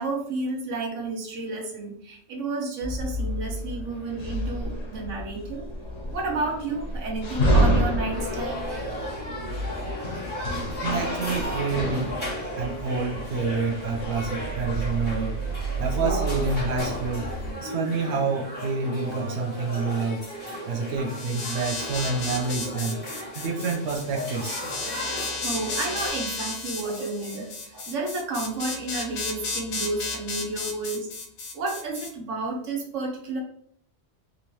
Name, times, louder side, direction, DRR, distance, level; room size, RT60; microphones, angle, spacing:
voice 1, 0.0-5.6 6.1-8.6 10.6-10.7 25.0-31.1 31.5-33.4, right 3 dB, 80° right, 1 dB, 1.2 m, -31 dB
sound 1, 2.8-17.5, right 1 dB, 85° left, 1.2 m, -29 dB
sound 2, 8.1-26.1, equal, 10° left, 1.4 m, -36 dB
voice 2, 10.8-12.2 12.6-15.4 15.8-17.3 17.6-20.2 20.7-23.0 23.3-24.6, right 4 dB, 65° right, 0 dB, 0.9 m, -28 dB
sound 3, 21.1-32.1, left 3 dB, 70° left, 0.9 m, -33 dB
3.6 x 2.8 x 3.0 m, 0.64 s
omnidirectional pair, 1.3 m